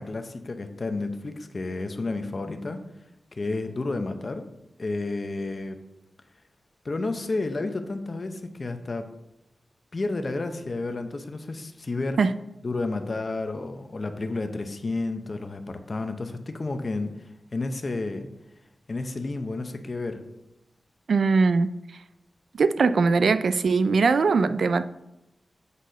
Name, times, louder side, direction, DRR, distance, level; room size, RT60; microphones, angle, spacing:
voice 1, 0.0-2.8 3.3-4.5 4.8-5.8 6.8-9.1 9.9-12.2 12.6-18.3 18.9-20.2, left 3 dB, 40° left, 0.7 m, -31 dB
voice 2, 21.1-21.7 22.5-24.8, right 4 dB, 75° right, 0.3 m, -21 dB
8.2 x 4.2 x 5.1 m
wide cardioid pair, 125°, 0 cm